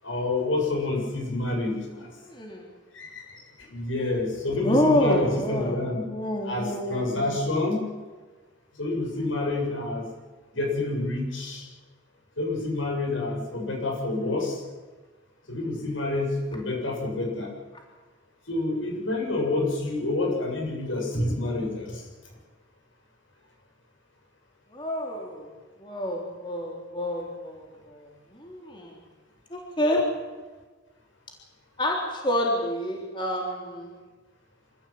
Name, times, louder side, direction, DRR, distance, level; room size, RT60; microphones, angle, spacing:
voice 1, 0.0-2.1 2.9-6.1 6.4-7.9 8.7-10.0 10.5-11.7 12.4-14.6 15.5-17.5 18.5-22.1, left 2 dB, 85° left, 0 dB, 7.5 m, -28 dB
voice 2, 2.2-2.6 4.6-7.3 24.7-25.5 25.8-29.0 29.5-30.0 31.8-33.9, left 1 dB, 25° left, 0 dB, 3.6 m, -28 dB
26.5 x 14.5 x 8.7 m, 1.3 s
head